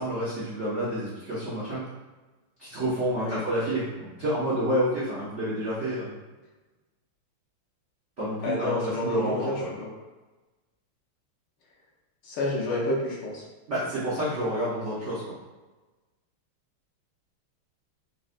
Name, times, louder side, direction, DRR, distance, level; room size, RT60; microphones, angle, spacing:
voice 1, 0.0-1.8 2.6-6.2 8.2-9.5 13.7-15.2, right 1 dB, 85° right, -10 dB, 0.6 m, -29 dB
voice 2, 8.4-9.9 12.2-13.4, left 1 dB, 75° left, -4 dB, 1.1 m, -29 dB
3.9 x 2.1 x 2.4 m, 1.2 s
omnidirectional pair, 2.3 m